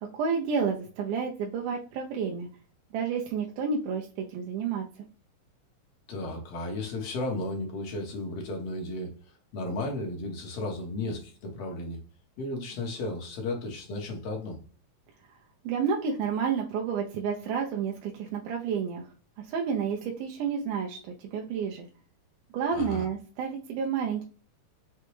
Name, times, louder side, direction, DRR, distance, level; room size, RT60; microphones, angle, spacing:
voice 1, 0.1-2.5 2.9-5.1 15.3-15.4 15.6-19.1 19.4-21.9 22.5-24.2, right 6 dB, 80° right, 0 dB, 2.2 m, -30 dB
voice 2, 6.1-9.1 9.5-12.0 12.4-14.6 22.7-23.1, left 2 dB, 60° left, 0 dB, 1.9 m, -34 dB
6.0 x 2.2 x 3.0 m, 0.39 s
omnidirectional pair, 3.7 m